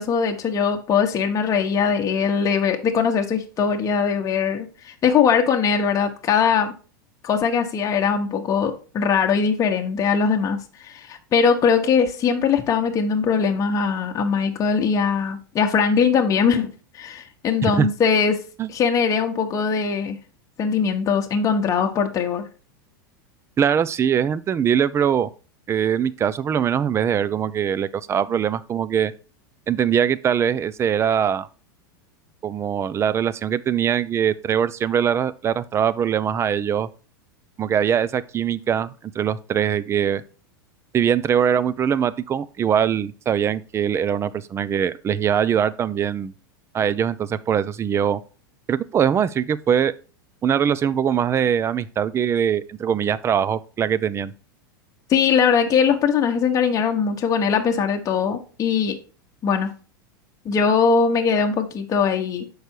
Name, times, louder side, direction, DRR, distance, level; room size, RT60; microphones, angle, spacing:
voice 1, 0.0-6.7 7.2-18.4 18.7-20.2 20.6-22.5 55.1-58.9 59.4-59.7 60.4-62.5, left 6 dB, 30° left, 1.1 m, -21 dB
voice 2, 23.6-25.3 25.7-29.1 29.7-31.5 32.4-36.9 37.6-40.2 40.9-46.3 46.7-48.2 48.7-49.9 50.4-54.3, right 8 dB, 25° right, 0.5 m, -22 dB
6.6 x 4.8 x 4.5 m
hypercardioid pair, 110°, 11 cm